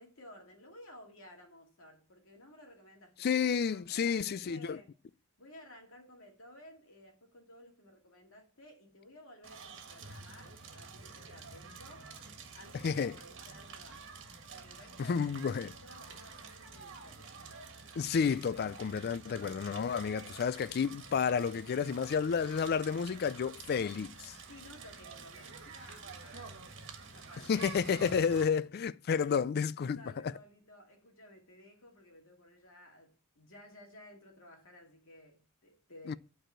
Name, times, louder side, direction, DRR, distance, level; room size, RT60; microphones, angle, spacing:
voice 1, 0.0-5.0 5.4-12.1 12.5-14.1 14.5-17.7 24.5-26.6 27.0-28.3 29.1-29.3 29.9-36.2, left 1 dB, 65° left, 2.5 m, -55 dB
voice 2, 3.2-4.8 12.8-13.1 15.0-15.7 18.0-24.3 27.5-30.3 36.1-36.2, left 6 dB, 45° left, 0.3 m, -31 dB
Crackle, 9.4-28.4, right 4 dB, 60° right, 1.6 m, -49 dB
9.1 x 4.8 x 7.4 m
head